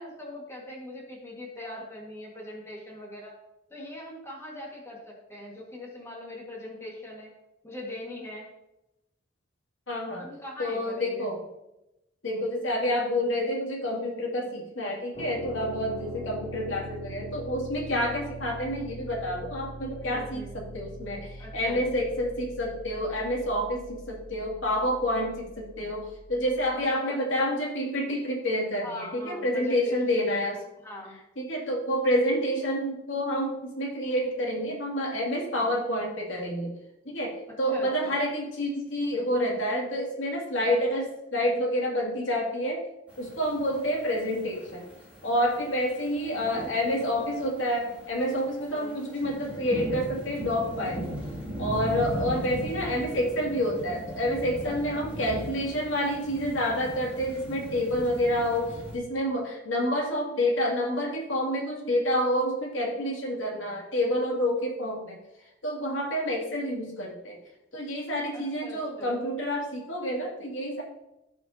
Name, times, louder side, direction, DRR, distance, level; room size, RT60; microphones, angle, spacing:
voice 1, 0.0-3.3 3.7-7.3 7.6-8.5 10.2-11.3 20.0-20.5 21.4-21.8 26.7-27.2 28.8-30.2 30.8-31.2 37.5-38.2 48.7-49.0 54.6-55.1 68.3-69.2, left 1 dB, 15° left, -2 dB, 1.8 m, -41 dB
voice 2, 9.9-10.3 10.6-11.5 12.2-30.6 31.4-36.7 37.0-42.9 43.2-44.9 45.2-51.2 51.6-65.2 65.6-67.4 67.7-70.8, equal, 80° left, -2 dB, 2.5 m, -28 dB
sound 1, 15.1-26.8, right 1 dB, 30° left, 2.8 m, -42 dB
sound 2, 43.1-58.9, equal, 10° right, 2.5 m, -39 dB
16.0 x 5.6 x 2.8 m, 0.91 s
head